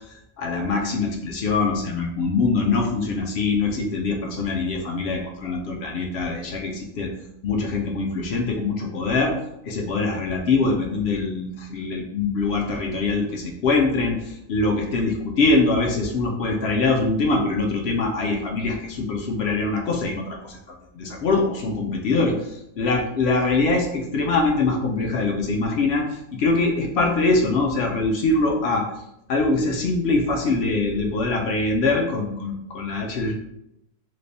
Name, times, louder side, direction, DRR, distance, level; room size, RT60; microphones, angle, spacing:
voice 1, 0.4-7.1 7.4-9.3 9.6-20.6 21.0-28.9 29.3-33.3, left 3 dB, 65° left, 1 dB, 0.7 m, -23 dB
3.3 x 3.2 x 2.6 m, 0.81 s
omnidirectional pair, 1.4 m